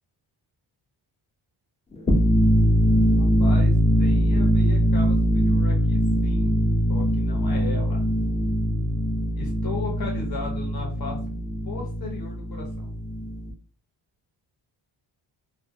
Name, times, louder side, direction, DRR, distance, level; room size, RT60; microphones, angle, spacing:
sound 1, 2.0-13.5, equal, 15° left, 0.4 m, -22 dB
voice 1, 3.2-6.6 6.9-8.1 9.3-11.2 11.7-12.9, left 4 dB, 45° left, 0 dB, 1.0 m, -37 dB
2.3 x 2.0 x 2.7 m, 0.39 s
cardioid pair, 60°, 50 cm